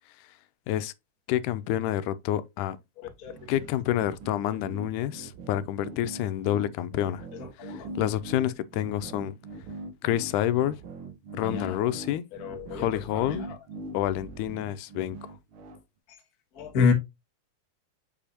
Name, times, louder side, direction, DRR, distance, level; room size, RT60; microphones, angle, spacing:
voice 1, 1.3-2.8 3.5-7.3 7.6-9.4 10.0-10.8 11.3-12.3 12.7-13.5 13.9-15.2, left 12 dB, 90° left, 2.1 m, -28 dB
sound 1, 3.3-15.8, right 2 dB, 65° right, 1.3 m, -42 dB
voice 2, 11.4-11.8 12.4-12.9 16.6-16.9, left 5 dB, 50° left, 1.1 m, -27 dB
6.9 x 5.4 x 2.8 m
omnidirectional pair, 3.5 m